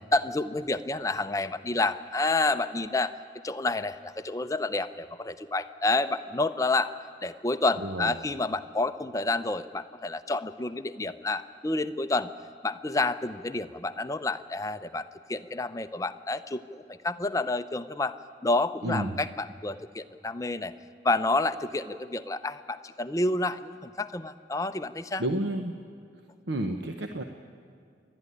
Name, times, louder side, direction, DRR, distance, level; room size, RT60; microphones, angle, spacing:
voice 1, 0.1-3.1 3.4-6.9 7.2-12.3 12.6-18.2 18.4-20.7 21.0-25.2, left 2 dB, 20° left, 11 dB, 0.5 m, -29 dB
voice 2, 7.8-8.1 18.8-19.2 25.2-25.7 26.5-27.2, right 1 dB, 85° right, 5 dB, 1.0 m, -30 dB
28.0 x 11.5 x 9.8 m, 2.3 s
head